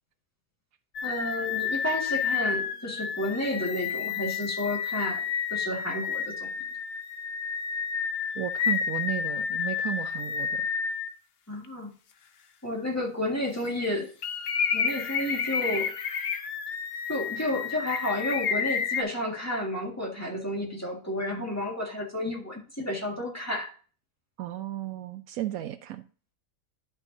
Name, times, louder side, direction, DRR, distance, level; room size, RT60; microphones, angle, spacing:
sound 1, 0.9-11.1 11.6-11.7 14.2-19.0, left 7 dB, 55° left, 0.8 m, -30 dB
voice 1, 1.0-6.5 11.5-11.9 12.6-14.1 14.7-15.9 17.1-23.7, left 1 dB, 10° left, 1.7 m, -31 dB
voice 2, 8.4-10.7 24.4-26.0, right 13 dB, 75° right, 1.0 m, -34 dB
11.0 x 5.9 x 2.7 m
omnidirectional pair, 1.5 m